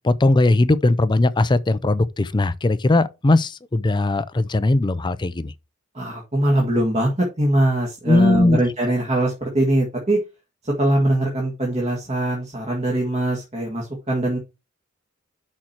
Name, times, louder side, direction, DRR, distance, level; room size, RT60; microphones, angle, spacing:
voice 1, 0.0-5.5 8.1-8.6, left 2 dB, 20° left, 0.4 m, -19 dB
voice 2, 5.9-10.2 10.6-14.4, right 1 dB, 35° right, 1.8 m, -22 dB
6.4 x 4.3 x 5.9 m
head